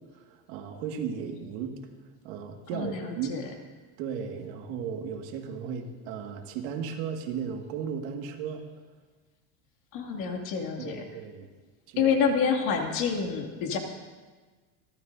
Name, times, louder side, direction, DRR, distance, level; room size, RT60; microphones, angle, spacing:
voice 1, 0.1-1.8 2.2-3.4 4.0-8.7 10.8-11.5 11.9-12.1, right 7 dB, 65° right, 3 dB, 2.0 m, -35 dB
voice 2, 2.7-3.4 9.9-11.0 12.0-13.8, left 6 dB, 50° left, 2 dB, 2.5 m, -27 dB
28.0 x 12.5 x 2.7 m, 1.4 s
cardioid pair, 160°, 41 cm